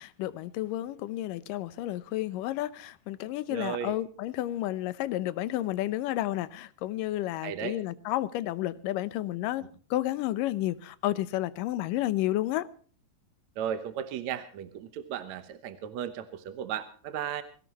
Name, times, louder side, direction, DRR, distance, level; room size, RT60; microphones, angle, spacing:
voice 1, 0.0-12.7, left 15 dB, 75° left, 2.4 m, -31 dB
voice 2, 3.5-4.0 7.4-7.8 13.6-17.4, right 9 dB, 65° right, 2.0 m, -35 dB
22.5 x 17.5 x 3.0 m
omnidirectional pair, 4.0 m